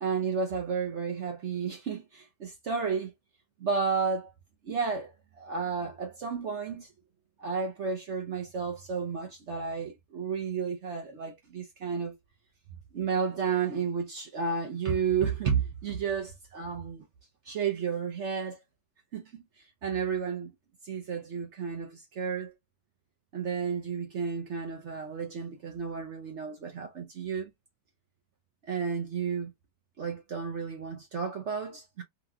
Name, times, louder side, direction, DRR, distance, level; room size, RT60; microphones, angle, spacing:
voice 1, 0.0-3.1 3.6-4.3 4.6-6.9 7.4-12.2 12.9-17.0 17.4-18.6 19.1-20.5 20.8-22.5 23.3-27.5 28.7-29.5 30.0-32.0, right 6 dB, 65° right, 0.7 m, -32 dB
2.9 x 2.9 x 2.3 m
omnidirectional pair, 1.8 m